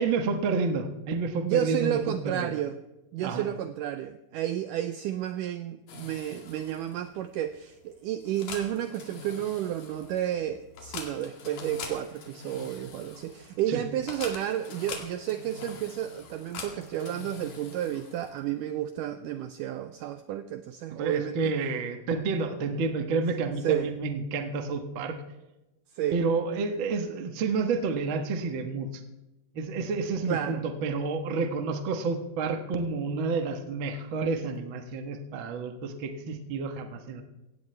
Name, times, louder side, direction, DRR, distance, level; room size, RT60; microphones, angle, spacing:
voice 1, 0.0-2.6 3.2-3.4 13.7-13.8 20.9-25.2 26.1-29.0 29.5-37.2, right 4 dB, 70° right, 6 dB, 1.1 m, -30 dB
voice 2, 1.4-2.8 3.1-21.5 23.6-23.9 26.0-26.2 30.3-30.6, right 11 dB, 90° right, 10 dB, 1.8 m, -31 dB
sound 1, 5.9-18.6, left 5 dB, 65° left, 3.6 m, -44 dB
17.0 x 16.5 x 3.3 m, 1.0 s
omnidirectional pair, 4.4 m